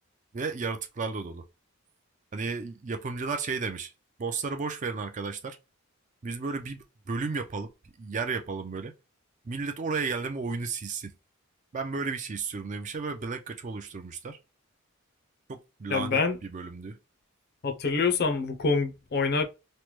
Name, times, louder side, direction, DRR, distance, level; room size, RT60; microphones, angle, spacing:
voice 1, 0.3-1.5 2.3-3.9 4.2-5.6 6.2-7.7 8.0-8.9 9.4-11.1 11.7-14.4 15.5-17.0, right 4 dB, 35° right, 0.4 m, -33 dB
voice 2, 15.9-16.4 17.6-19.5, left 4 dB, 45° left, 0.5 m, -26 dB
3.1 x 2.1 x 3.0 m
head